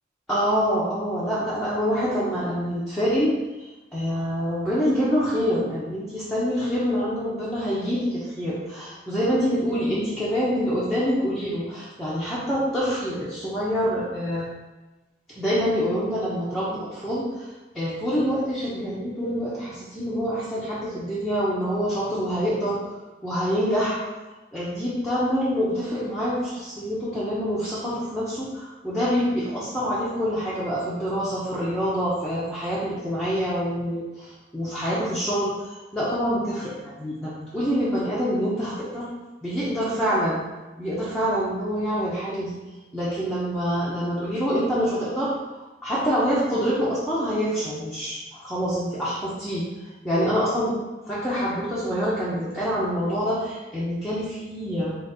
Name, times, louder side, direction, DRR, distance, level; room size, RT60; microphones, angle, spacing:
voice 1, 0.3-3.3 3.6-14.5 15.4-17.5 17.7-22.8 23.2-24.0 24.5-35.5 35.9-39.1 39.4-40.4 40.8-42.6 42.9-45.3 45.8-49.7 50.0-50.7 51.1-55.0, equal, ahead, -10 dB, 0.8 m, -26 dB
4.0 x 2.6 x 4.0 m, 1.1 s
head